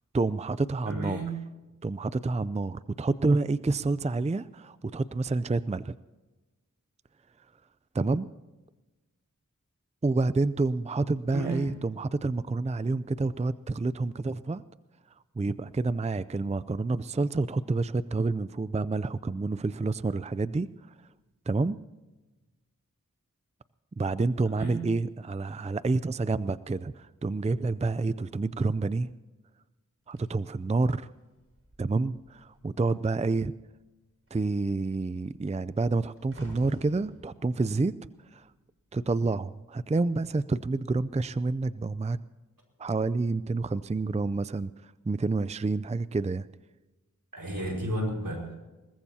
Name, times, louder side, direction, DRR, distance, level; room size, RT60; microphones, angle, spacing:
voice 1, 0.1-1.2 1.8-5.9 7.9-8.3 10.0-14.6 15.4-21.0 21.5-21.8 24.0-29.1 30.1-31.1 31.8-33.5 34.3-38.5 38.9-42.2 42.8-46.5, right 3 dB, 20° right, 15 dB, 0.4 m, -28 dB
voice 2, 0.9-1.4 11.3-11.7 24.6-24.8 47.3-48.6, right 1 dB, 80° right, -1 dB, 5.2 m, -32 dB
sound 1, 30.1-32.8 33.1-33.5 33.8-39.1 39.9-40.1, equal, 40° right, 5.5 m, -51 dB
22.0 x 19.5 x 2.8 m, 1.1 s
wide cardioid pair, 45°, 33 cm